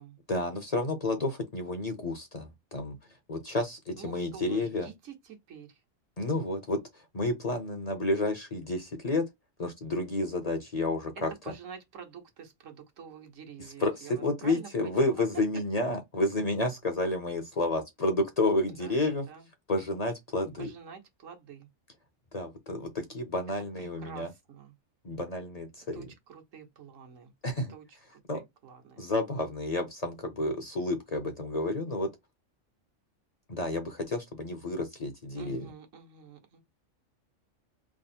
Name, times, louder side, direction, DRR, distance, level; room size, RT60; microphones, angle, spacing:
voice 1, 0.3-3.0 3.3-4.9 6.2-9.3 9.6-11.3 13.8-19.3 19.7-20.7 22.3-24.3 25.0-26.1 27.4-27.7 28.3-28.4 29.0-32.1 33.5-35.7, left 2 dB, 35° left, 0.7 m, -30 dB
voice 2, 4.0-5.8 11.4-15.2 18.7-19.5 20.6-21.7 23.8-24.7 25.9-27.3 27.7-29.0 35.4-36.6, right 7 dB, 75° right, 1.4 m, -48 dB
3.6 x 2.0 x 4.1 m
omnidirectional pair, 1.3 m